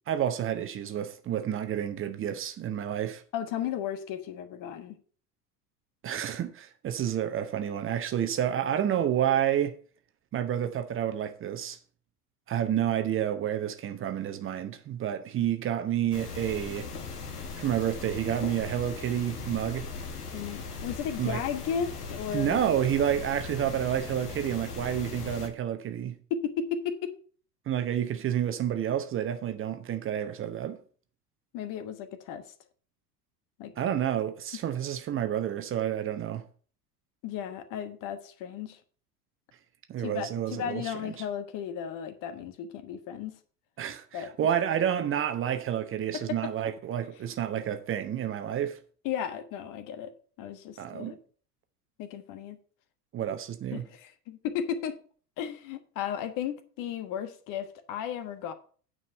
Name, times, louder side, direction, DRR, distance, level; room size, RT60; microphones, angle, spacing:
voice 1, 0.1-3.2 6.0-9.8 10.3-11.8 12.5-16.9 17.6-19.9 21.2-21.4 22.3-26.2 27.7-30.8 33.8-36.4 39.9-40.9 43.8-48.8 50.8-51.2 53.1-53.8, right 10 dB, 25° right, 0.9 m, -29 dB
voice 2, 3.3-5.0 20.3-22.6 26.3-27.1 31.5-32.4 33.6-33.7 37.2-38.8 40.0-43.3 44.1-44.3 46.1-46.5 49.0-50.1 50.4-51.2 52.0-52.6 53.7-55.0 55.4-58.5, left 8 dB, 40° left, 1.3 m, -34 dB
sound 1, 16.1-25.5, left 4 dB, 75° left, 1.8 m, -39 dB
9.4 x 5.4 x 6.6 m
figure-of-eight pair, 75°, 47 cm